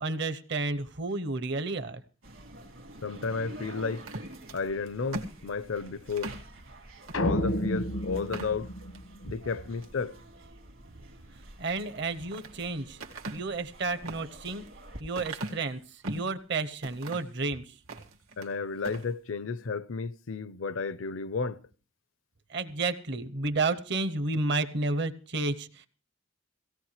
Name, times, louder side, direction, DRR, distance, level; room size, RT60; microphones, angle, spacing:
voice 1, 0.0-2.0 11.6-13.0 13.3-14.6 15.0-17.7 22.5-25.9, right 3 dB, 55° right, 0.8 m, -31 dB
sound 1, 2.2-15.0, right 1 dB, 70° right, 2.1 m, -49 dB
voice 2, 3.0-4.0 4.5-6.3 7.2-8.7 9.2-10.1 18.4-21.6, left 4 dB, 70° left, 0.6 m, -32 dB
sound 2, 3.9-6.5 7.0-7.2 7.6-7.7 8.1-9.1 9.6-10.0 11.8-12.5 13.0-16.3 16.8-17.4 17.8-18.5 18.8-19.1, right 2 dB, 90° right, 1.9 m, -41 dB
sound 3, 7.1-9.6, equal, 85° left, 1.2 m, -31 dB
17.5 x 16.5 x 3.2 m
head